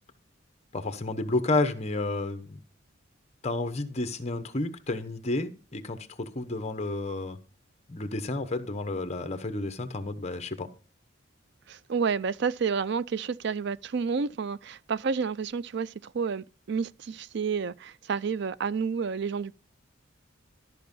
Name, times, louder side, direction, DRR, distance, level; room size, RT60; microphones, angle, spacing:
voice 1, 0.7-2.6 3.4-7.4 7.9-10.7, left 2 dB, 30° left, 1.0 m, -31 dB
voice 2, 11.7-19.6, right 5 dB, 55° right, 0.4 m, -30 dB
13.0 x 5.2 x 5.4 m
head